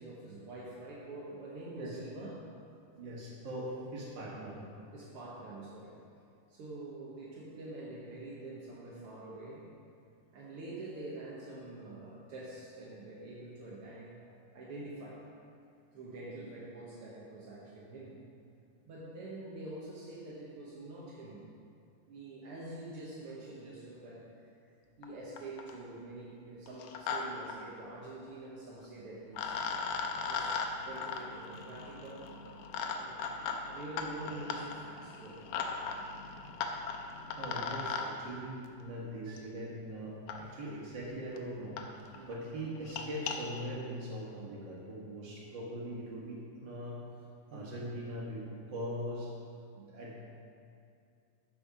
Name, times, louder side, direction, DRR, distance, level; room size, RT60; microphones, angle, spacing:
voice 1, 0.0-2.5 4.9-6.0 6.5-9.7 10.3-15.3 15.9-18.2 18.8-21.5 22.1-24.5 25.0-29.6 30.2-32.4 33.0-33.3 33.6-35.5 42.1-42.3 47.5-47.7, right 2 dB, 65° right, -6 dB, 1.4 m, -46 dB
voice 2, 3.0-4.6 5.0-5.1 37.4-47.0 47.5-48.4 48.7-49.3 49.7-50.2, equal, 40° right, -5 dB, 2.0 m, -41 dB
sound 1, 25.0-25.1 25.4-25.8 26.7-27.2 27.5-27.6 28.8-28.9 29.3-38.1 39.4-39.5 40.3-40.4 41.0-41.1 41.4-41.5 41.8-41.9 42.1-42.3 42.8-43.4, left 5 dB, 80° left, 2.1 m, -38 dB
13.5 x 5.5 x 4.8 m, 2.4 s
omnidirectional pair, 3.9 m